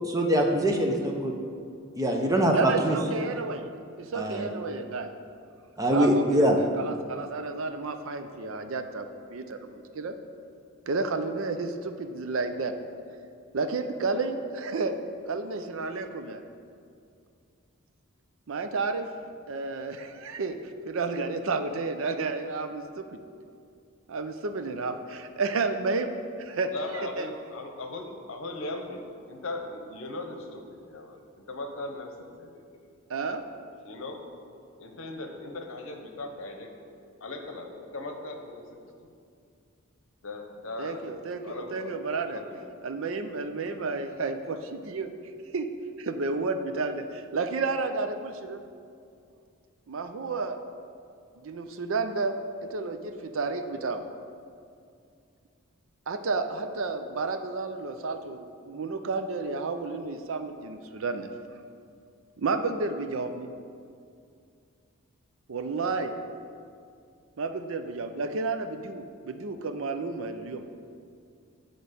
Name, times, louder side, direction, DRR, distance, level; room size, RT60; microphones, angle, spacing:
voice 1, 0.1-1.3 2.0-3.0 4.1-4.5 5.8-6.6, equal, 15° right, 1 dB, 0.7 m, -23 dB
voice 2, 2.5-5.1 5.9-10.1 10.9-12.7 13.5-14.9 15.3-16.4 18.5-19.1 19.5-20.6 20.9-23.2 24.1-26.1 26.4-26.7 27.0-27.3 33.1-33.4 40.8-42.4 42.8-45.1 45.5-45.7 46.0-48.6 49.9-50.6 51.4-54.0 56.1-61.3 62.4-63.5 65.5-66.1 67.4-70.6, right 3 dB, 65° right, 8 dB, 0.5 m, -31 dB
voice 3, 26.7-31.2 31.5-32.6 33.8-34.2 34.8-36.7 37.2-38.8 40.2-41.1 41.4-41.9 42.3-42.7 43.6-43.8, left 2 dB, 70° left, 4 dB, 0.9 m, -38 dB
8.9 x 3.9 x 6.5 m, 2.3 s
head